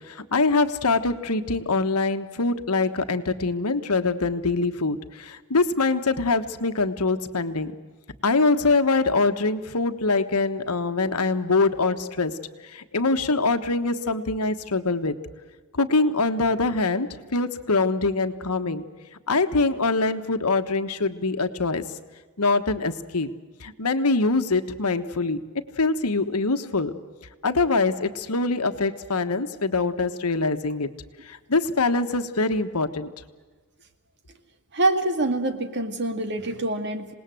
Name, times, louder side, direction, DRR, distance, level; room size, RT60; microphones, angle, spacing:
voice 1, 0.1-7.7 8.2-12.4 12.6-15.1 15.7-18.8 19.3-21.8 22.4-23.3 23.6-25.4 25.8-27.0 27.4-30.9 31.2-33.1, left 3 dB, 85° left, 9 dB, 1.4 m, -24 dB
voice 2, 34.7-37.1, right 2 dB, 50° right, 7 dB, 2.1 m, -25 dB
27.0 x 19.5 x 7.8 m, 1.4 s
head